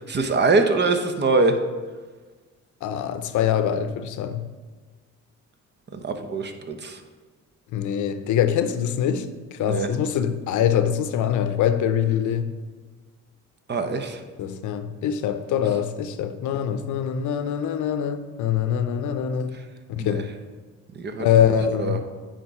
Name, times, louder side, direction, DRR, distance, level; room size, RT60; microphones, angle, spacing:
voice 1, 0.1-1.6 5.9-7.0 9.6-9.9 13.7-14.2 19.4-19.6 20.0-20.2 20.9-21.3 21.8-22.0, right 3 dB, 35° right, 0.8 m, -23 dB
voice 2, 2.8-4.5 7.7-12.5 14.4-19.6 19.9-20.3 21.2-22.0, left 9 dB, 75° left, 0.6 m, -24 dB
8.9 x 4.0 x 4.7 m
cardioid pair, 90°, 30 cm